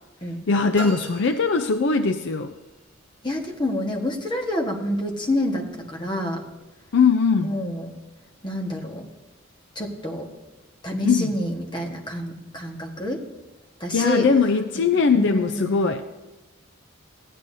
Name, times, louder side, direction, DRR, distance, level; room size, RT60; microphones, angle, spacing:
voice 1, 0.5-2.5 6.9-7.5 11.0-11.3 13.9-16.0, left 5 dB, 60° left, 9 dB, 0.5 m, -20 dB
sound 1, 0.7-2.4, right 3 dB, 10° right, 2.2 m, -39 dB
voice 2, 3.2-6.4 7.4-7.9 8.4-9.1 9.7-10.3 10.8-13.2 13.8-14.3 14.9-15.8, left 1 dB, 20° left, 1 dB, 1.3 m, -28 dB
15.0 x 10.0 x 2.7 m, 1.1 s
head